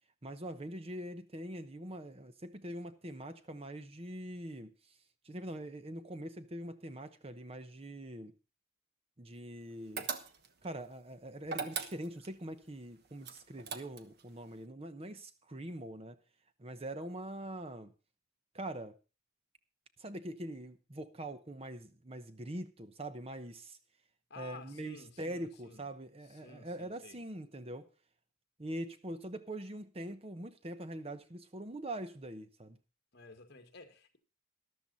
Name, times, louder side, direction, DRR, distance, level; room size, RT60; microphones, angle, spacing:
voice 1, 0.2-5.0 5.2-8.3 9.2-10.1 10.6-16.2 16.6-17.9 18.5-18.9 20.0-23.8 24.4-27.9 28.6-32.8, right 1 dB, 25° right, 0.9 m, -43 dB
sound 1, 10.0-10.6 11.4-12.3 13.2-14.2, right 5 dB, 50° right, 1.2 m, -39 dB
voice 2, 24.3-25.8 26.3-27.2 33.1-34.2, left 3 dB, 50° left, 1.9 m, -53 dB
13.5 x 12.0 x 4.1 m
head